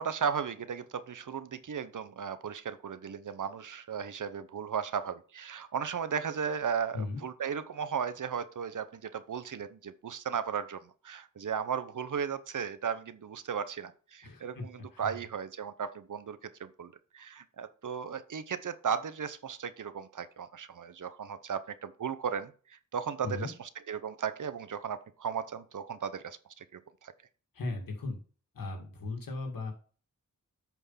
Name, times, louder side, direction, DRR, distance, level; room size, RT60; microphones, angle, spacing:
voice 1, 0.0-27.1, right 7 dB, 65° right, 13 dB, 0.9 m, -36 dB
voice 2, 14.2-14.6 14.9-15.1 23.2-23.5 27.5-28.2 28.5-29.7, left 3 dB, 80° left, 3 dB, 2.3 m, -37 dB
8.3 x 4.6 x 5.7 m, 0.39 s
wide cardioid pair, 85°, 33 cm